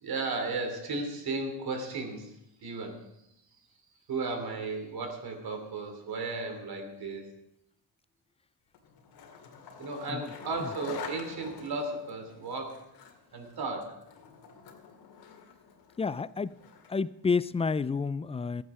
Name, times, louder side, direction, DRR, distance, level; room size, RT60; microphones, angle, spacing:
voice 1, 0.0-2.3 2.6-3.1 4.1-7.3 9.8-12.9 13.3-14.0, right 3 dB, 65° right, 5 dB, 2.9 m, -35 dB
Skateboard, 8.7-17.1, left 6 dB, 85° left, 2.4 m, -47 dB
voice 2, 16.0-16.5 16.9-18.6, left 5 dB, 15° left, 17 dB, 0.3 m, -29 dB
14.5 x 9.8 x 4.8 m, 0.82 s
cardioid pair, 95°, 39 cm